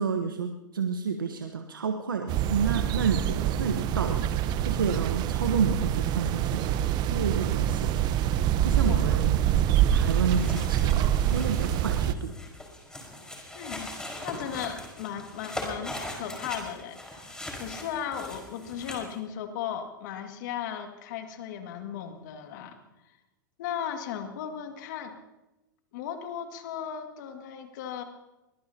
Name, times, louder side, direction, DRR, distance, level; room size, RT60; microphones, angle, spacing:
voice 1, 0.0-6.7 7.1-7.9 8.6-9.4 9.9-12.3, right 6 dB, 90° right, 5 dB, 1.2 m, -30 dB
sound 1, 2.3-12.1, right 11 dB, 40° right, 0.9 m, -25 dB
sound 2, 10.0-19.1, left 1 dB, 5° left, 4.8 m, -40 dB
voice 2, 13.5-13.9 14.2-22.8 23.6-25.1 25.9-28.0, left 9 dB, 65° left, 5 dB, 2.1 m, -36 dB
23.0 x 21.0 x 2.9 m, 1.0 s
hypercardioid pair, 105°, 11 cm